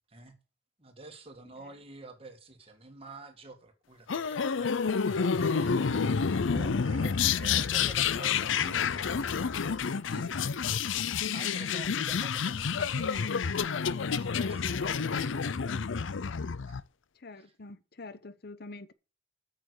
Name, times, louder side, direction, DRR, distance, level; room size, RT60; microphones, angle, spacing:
voice 1, 0.8-6.2 6.5-9.5 10.1-10.9 11.3-15.8 16.7-16.8 17.4-17.5, right 3 dB, 30° right, 1.9 m, -49 dB
sound 1, 4.1-16.8, left 6 dB, 85° left, 0.6 m, -29 dB
voice 2, 17.1-18.9, left 2 dB, 55° left, 0.8 m, -46 dB
8.8 x 6.8 x 6.6 m
head